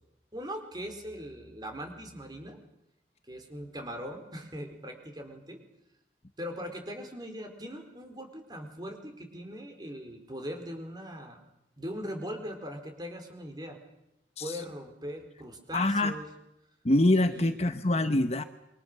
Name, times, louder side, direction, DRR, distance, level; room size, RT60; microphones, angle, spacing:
voice 1, 0.3-2.6 3.3-5.6 6.4-11.4 11.8-13.8 14.4-16.3 17.3-17.7, equal, 25° right, 5 dB, 4.5 m, -40 dB
voice 2, 15.7-16.1 16.8-18.4, left 1 dB, 35° left, 9 dB, 1.0 m, -25 dB
27.5 x 24.5 x 6.8 m, 0.84 s
head